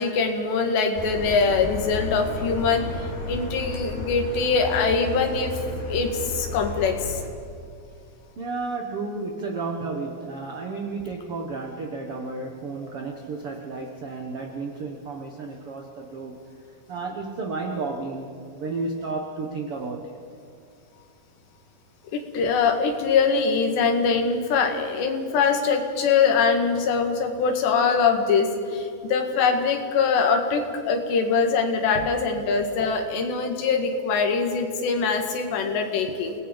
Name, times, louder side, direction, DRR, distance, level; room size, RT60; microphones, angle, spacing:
voice 1, 0.0-2.9 3.3-5.6 5.9-7.2 22.1-36.4, left 5 dB, 85° left, 4 dB, 4.0 m, -23 dB
Car, 1.0-7.3, left 2 dB, 60° left, 4.8 m, -33 dB
voice 2, 8.4-16.4 16.9-20.1, right 3 dB, 70° right, 2 dB, 1.3 m, -32 dB
29.0 x 19.0 x 5.3 m, 2.4 s
omnidirectional pair, 4.8 m